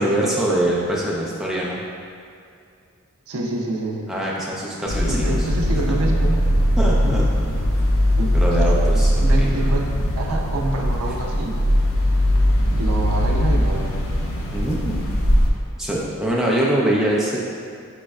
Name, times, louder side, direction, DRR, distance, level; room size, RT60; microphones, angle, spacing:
voice 1, 0.0-1.8 4.1-5.5 6.8-7.3 8.3-9.1 9.4-9.7 14.5-15.0 15.8-17.4, right 1 dB, ahead, -6 dB, 0.5 m, -23 dB
voice 2, 3.3-4.1 5.1-6.3 6.9-7.2 8.2-8.7 9.2-11.5 12.7-14.0, right 2 dB, 85° right, -1 dB, 0.6 m, -27 dB
sound 1, 4.9-15.5, equal, 70° left, 0.5 m, -20 dB
6.1 x 3.1 x 2.3 m, 2.4 s
head